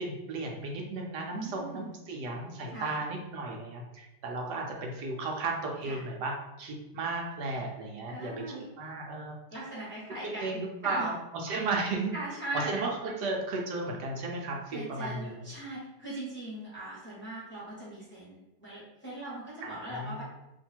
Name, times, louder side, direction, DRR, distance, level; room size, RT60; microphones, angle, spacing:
voice 1, 0.0-8.3 8.8-9.4 10.2-11.1 11.4-12.1 12.5-15.4 19.6-20.2, right 3 dB, 80° right, 0 dB, 1.2 m, -34 dB
voice 2, 1.3-2.0 2.7-3.0 5.8-6.0 8.1-8.7 9.5-11.1 12.1-12.7 14.7-20.2, right 1 dB, 10° left, -7 dB, 1.0 m, -40 dB
2.8 x 2.6 x 4.3 m, 0.97 s
omnidirectional pair, 1.9 m